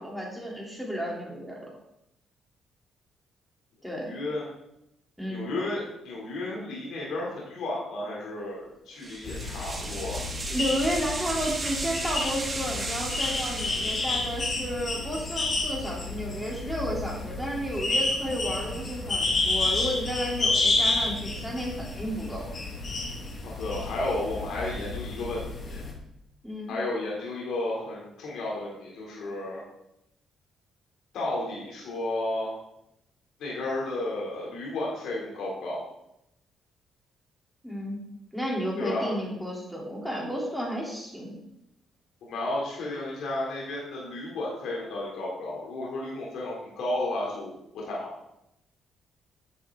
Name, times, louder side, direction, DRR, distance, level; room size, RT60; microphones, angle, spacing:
voice 1, 0.0-1.7 3.8-4.1 5.2-5.5 10.5-22.5 26.4-26.7 37.6-38.0 38.3-41.4, equal, ahead, -3 dB, 3.6 m, -32 dB
voice 2, 4.1-4.5 5.3-10.2 23.4-25.8 26.7-29.6 31.1-32.5 33.4-35.8 38.8-39.1 42.3-48.2, left 2 dB, 80° left, -4 dB, 3.3 m, -33 dB
sound 1, 9.0-14.6, right 2 dB, 25° right, 1.9 m, -35 dB
sound 2, 9.2-25.9, left 3 dB, 45° left, 2.4 m, -30 dB
10.0 x 7.4 x 3.9 m, 0.81 s
cardioid pair, 90°, 0 cm